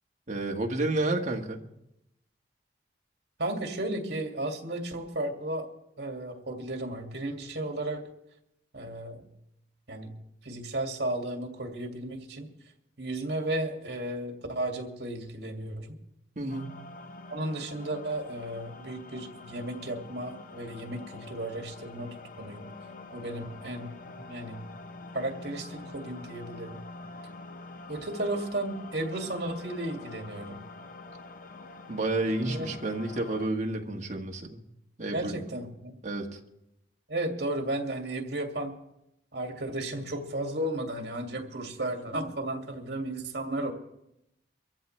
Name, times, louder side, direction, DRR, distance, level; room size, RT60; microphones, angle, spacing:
voice 1, 0.3-1.6 16.3-16.8 31.9-34.6 35.0-35.4 36.0-36.4, right 2 dB, 40° right, 1 dB, 1.5 m, -30 dB
voice 2, 3.4-5.7 6.0-8.1 8.7-9.2 9.9-10.1 10.4-12.5 13.0-15.9 17.3-22.7 23.1-24.6 25.1-26.8 27.9-30.6 32.5-32.7 35.1-36.0 37.1-38.8 39.3-43.7, right 1 dB, 65° right, 2 dB, 2.3 m, -34 dB
sound 1, 16.5-33.5, left 3 dB, 50° left, 0.7 m, -46 dB
24.0 x 15.0 x 3.3 m, 0.83 s
head